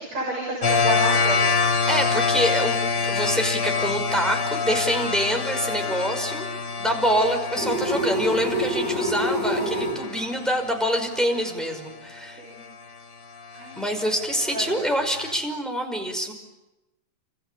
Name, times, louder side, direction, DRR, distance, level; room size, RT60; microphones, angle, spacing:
voice 1, 0.0-1.5 5.8-5.9 6.9-7.2 12.4-12.7 13.5-13.8 14.5-14.7, right 1 dB, 60° right, -1 dB, 8.2 m, -31 dB
sound 1, 0.6-11.4 13.4-15.3, left 5 dB, 40° left, 2.0 m, -26 dB
voice 2, 1.9-2.8 3.0-6.5 6.8-12.4 13.8-16.3, equal, ahead, 3 dB, 5.3 m, -26 dB
sound 2, 7.6-10.0, equal, 25° right, 6.9 m, -26 dB
29.5 x 27.5 x 7.1 m, 1.0 s
omnidirectional pair, 3.4 m